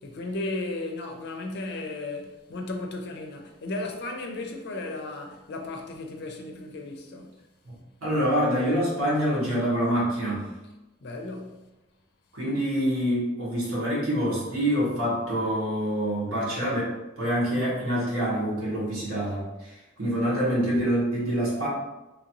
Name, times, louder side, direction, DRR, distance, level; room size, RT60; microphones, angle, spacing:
voice 1, 0.0-7.3 11.0-11.7, left 2 dB, 50° left, 0.5 m, -35 dB
voice 2, 8.0-10.5 12.3-21.7, equal, 85° right, 1.4 m, -26 dB
3.0 x 2.6 x 2.9 m
head